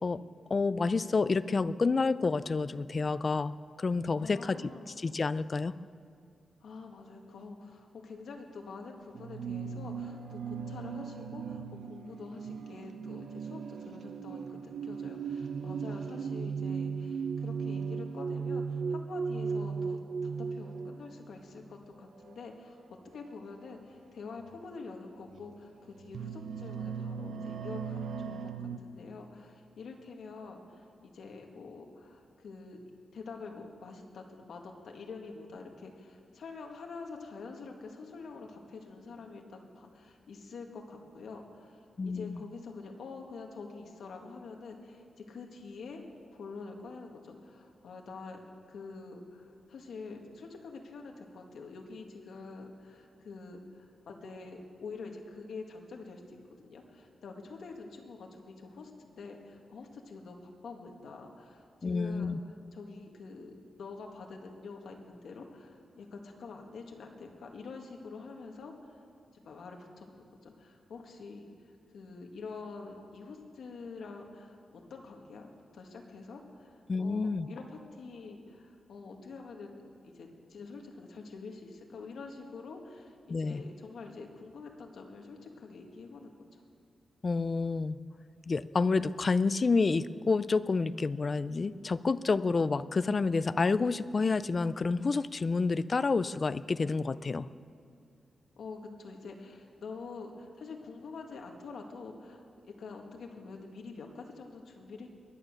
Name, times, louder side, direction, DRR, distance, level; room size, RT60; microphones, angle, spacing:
voice 1, 0.5-4.6 5.0-5.7 42.0-42.4 61.8-62.4 76.9-77.5 83.3-83.6 87.2-88.0 88.5-97.5, left 4 dB, 30° left, 15 dB, 0.4 m, -29 dB
voice 2, 4.1-4.9 6.6-32.8 33.1-46.0 46.3-48.4 48.7-69.0 69.3-71.5 71.9-86.6 98.6-105.1, left 4 dB, 75° left, 2 dB, 2.0 m, -46 dB
sound 1, 9.1-21.4 22.2-22.5 23.7-23.8 24.4-24.6 25.3-28.8, right 6 dB, 65° right, 0.7 m, -37 dB
22.5 x 9.6 x 6.7 m, 2.3 s
wide cardioid pair, 175°, 0 cm